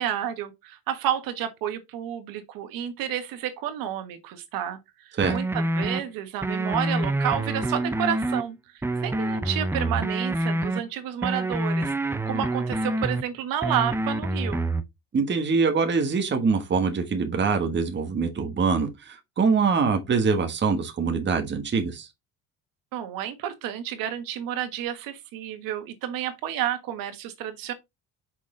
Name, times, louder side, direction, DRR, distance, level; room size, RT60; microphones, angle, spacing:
voice 1, 0.0-14.7 22.9-27.7, right 10 dB, 75° right, 1.5 m, -30 dB
sound 1, 5.2-6.0 6.4-8.4 8.8-10.8 11.2-13.2 13.6-14.8, right 2 dB, 5° right, 0.6 m, -27 dB
voice 2, 15.1-22.1, right 5 dB, 30° right, 1.4 m, -24 dB
6.1 x 4.2 x 3.8 m
cardioid pair, 100°, 35 cm